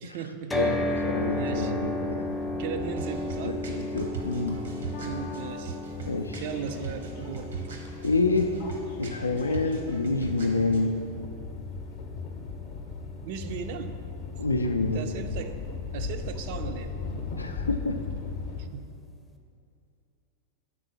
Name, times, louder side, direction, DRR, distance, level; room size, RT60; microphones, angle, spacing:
voice 1, 0.0-0.6 0.9-1.0 1.3-1.7 2.6-3.6 5.0-5.8 6.4-7.5 13.2-14.0 14.8-15.6 15.9-17.0 18.6-18.9, right 7 dB, 50° right, 9 dB, 0.4 m, -37 dB
voice 2, 0.5-2.4 3.4-4.6 6.1-6.4 8.0-8.5 9.0-10.9 14.4-15.1 17.4-18.0, left 3 dB, 80° left, 5 dB, 0.3 m, -27 dB
sound 1, 0.5-14.6, left 1 dB, 10° left, 0.5 m, -35 dB
sound 2, 0.8-18.7, left 4 dB, 50° left, 0.7 m, -39 dB
sound 3, 2.8-10.8, right 4 dB, 65° right, 0.8 m, -40 dB
6.0 x 3.9 x 6.2 m, 2.5 s
figure-of-eight pair, 90°, 0 cm